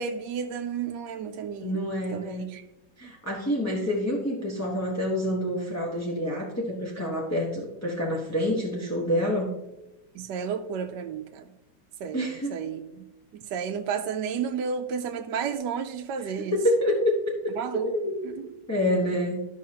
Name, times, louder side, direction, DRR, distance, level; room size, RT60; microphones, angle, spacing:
voice 1, 0.0-1.8 2.1-2.6 10.1-11.5 12.0-13.0 13.3-16.6 17.6-17.9 18.4-18.5, right 6 dB, 75° right, 4 dB, 1.1 m, -32 dB
voice 2, 1.6-2.4 3.0-9.5 12.1-12.6 16.2-18.4 18.7-19.5, left 1 dB, 15° left, -3 dB, 0.6 m, -27 dB
13.0 x 5.5 x 2.8 m, 0.95 s
omnidirectional pair, 2.1 m